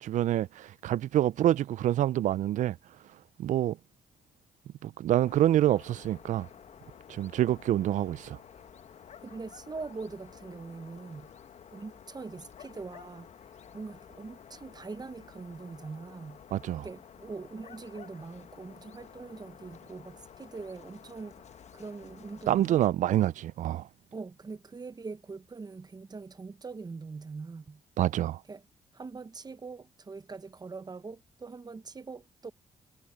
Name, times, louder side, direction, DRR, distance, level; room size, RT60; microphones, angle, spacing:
voice 1, 0.0-2.8 3.4-3.8 4.8-6.5 7.1-8.4 16.5-16.9 22.5-23.9 28.0-28.4, right 12 dB, 70° right, 0.5 m, -26 dB
sound 1, 5.1-22.9, left 8 dB, 55° left, 1.2 m, -52 dB
voice 2, 9.2-11.3 11.7-13.3 13.7-16.4 16.8-21.5 21.7-22.8 24.1-27.8 28.5-28.6 28.9-32.5, right 4 dB, 30° right, 1.1 m, -42 dB
supercardioid pair, 65°, 13 cm